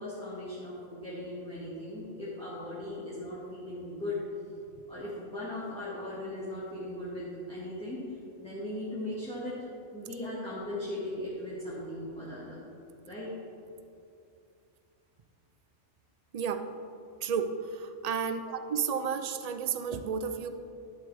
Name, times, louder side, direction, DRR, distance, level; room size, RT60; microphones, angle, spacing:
voice 1, 0.0-4.2 4.9-9.7 9.9-12.7 13.0-13.3, left 1 dB, 5° left, -10 dB, 1.8 m, -38 dB
voice 2, 16.3-16.7 17.2-18.4 18.7-20.5, right 6 dB, 55° right, 9 dB, 0.4 m, -32 dB
12.0 x 7.6 x 3.4 m, 2.6 s
omnidirectional pair, 1.2 m